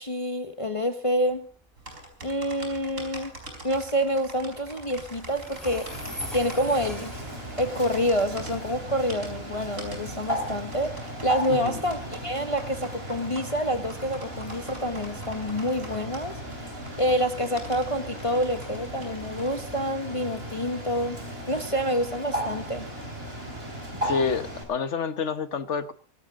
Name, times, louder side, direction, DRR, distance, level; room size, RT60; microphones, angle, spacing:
voice 1, 0.0-1.5 2.2-3.3 3.6-5.9 6.3-7.1 7.6-16.4 17.0-21.2 21.5-22.9, equal, 25° left, 6 dB, 1.5 m, -27 dB
Train, 1.2-16.0, left 1 dB, ahead, 4.9 m, -46 dB
sound 1, 1.8-19.6, right 1 dB, 65° right, 5.4 m, -44 dB
Bird, 5.9-24.6, equal, 45° right, 4.8 m, -36 dB
voice 2, 11.5-11.8 24.0-25.9, left 6 dB, 60° left, 11 dB, 1.6 m, -28 dB
24.0 x 12.0 x 3.8 m, 0.43 s
omnidirectional pair, 1.4 m